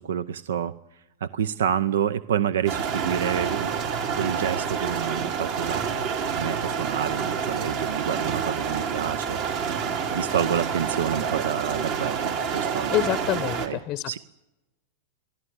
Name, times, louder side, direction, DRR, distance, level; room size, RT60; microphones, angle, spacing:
voice 1, 0.0-3.7 4.1-9.8 10.1-12.9 13.6-13.8 14.1-14.2, right 8 dB, 70° right, 17 dB, 0.7 m, -28 dB
sound 1, 2.7-13.7, right 6 dB, 55° right, 3.5 m, -28 dB
voice 2, 12.9-14.2, left 14 dB, 40° left, 17 dB, 0.7 m, -27 dB
24.0 x 15.0 x 9.4 m, 0.99 s
hypercardioid pair, 100°, 0 cm